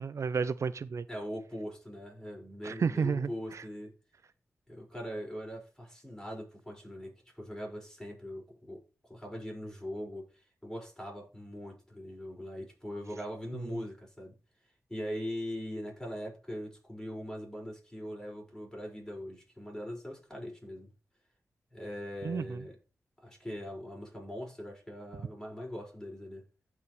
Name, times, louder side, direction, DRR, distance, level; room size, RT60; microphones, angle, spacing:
voice 1, 0.0-1.1 2.6-3.6 13.6-13.8 22.2-22.6, right 5 dB, 60° right, 0.5 m, -32 dB
voice 2, 1.1-3.9 4.7-8.8 9.1-14.3 14.9-20.9 21.7-22.7 23.2-26.5, equal, 10° left, 5.5 m, -41 dB
15.0 x 5.1 x 3.2 m
cardioid pair, 55°, 6 cm